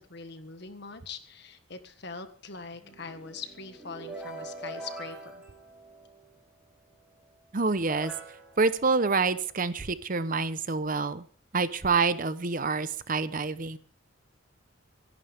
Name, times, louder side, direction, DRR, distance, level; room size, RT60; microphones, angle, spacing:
voice 1, 0.0-5.4, left 4 dB, 60° left, 9 dB, 1.6 m, -42 dB
sound 1, 2.7-6.4 7.2-7.3 7.8-9.7, right 2 dB, 5° right, 4.2 m, -44 dB
voice 2, 7.5-8.1 8.6-11.2 11.5-13.8, right 4 dB, 45° right, 14 dB, 0.8 m, -27 dB
25.0 x 11.0 x 3.6 m, 0.43 s
head